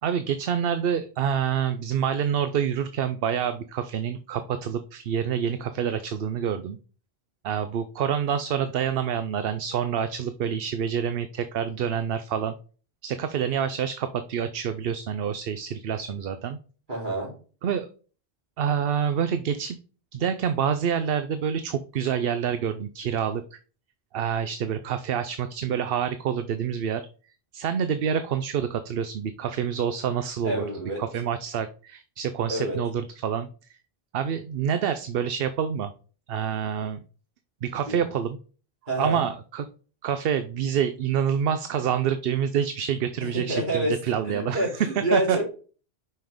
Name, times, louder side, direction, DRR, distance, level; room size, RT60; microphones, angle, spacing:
voice 1, 0.0-6.8 7.4-12.5 13.0-16.6 17.6-17.9 18.6-19.8 20.1-23.6 24.1-27.1 27.5-30.6 31.0-33.5 34.1-35.9 36.3-37.0 37.6-38.4 39.0-39.7 40.0-44.6 45.1-45.4, right 8 dB, 70° right, 10 dB, 0.8 m, -27 dB
voice 2, 16.9-17.3 30.4-31.0 32.5-32.8 37.8-38.0 38.9-39.2 43.2-44.0 44.2-45.4, right 1 dB, 50° right, -4 dB, 3.6 m, -28 dB
5.8 x 5.5 x 5.0 m, 0.38 s
omnidirectional pair, 1.0 m